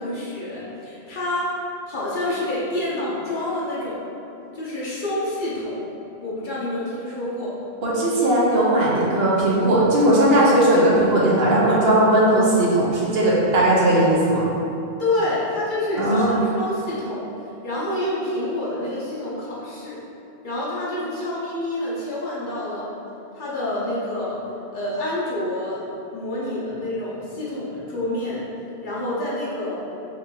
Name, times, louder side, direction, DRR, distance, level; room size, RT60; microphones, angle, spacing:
voice 1, 0.0-1.5 1.9-4.0 4.5-5.8 6.2-7.5 15.0-17.2 17.6-20.0 20.4-22.9 23.4-24.4 24.7-25.8 26.1-28.4 28.8-29.8, left 1 dB, 55° left, -7 dB, 0.8 m, -27 dB
voice 2, 7.8-14.5 16.0-16.4, right 1 dB, 70° right, -5 dB, 0.9 m, -18 dB
4.4 x 2.5 x 2.8 m, 2.8 s
omnidirectional pair, 1.1 m